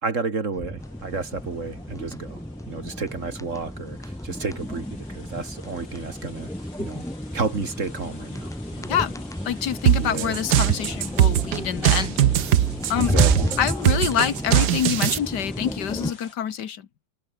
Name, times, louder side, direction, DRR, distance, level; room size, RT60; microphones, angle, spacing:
voice 1, 0.0-2.4 2.7-6.5 6.8-7.0 7.3-8.9 10.0-10.4 13.0-13.6, right 4 dB, 45° right, 2.2 m, -31 dB
sound 1, 0.5-16.1, equal, 5° left, 0.4 m, -32 dB
sound 2, 0.8-16.4, left 4 dB, 85° left, 4.7 m, -49 dB
voice 2, 9.5-12.1 12.9-13.1 13.6-16.8, left 9 dB, 65° left, 1.8 m, -26 dB
sound 3, 9.9-15.2, right 11 dB, 65° right, 1.4 m, -20 dB
omnidirectional pair, 2.0 m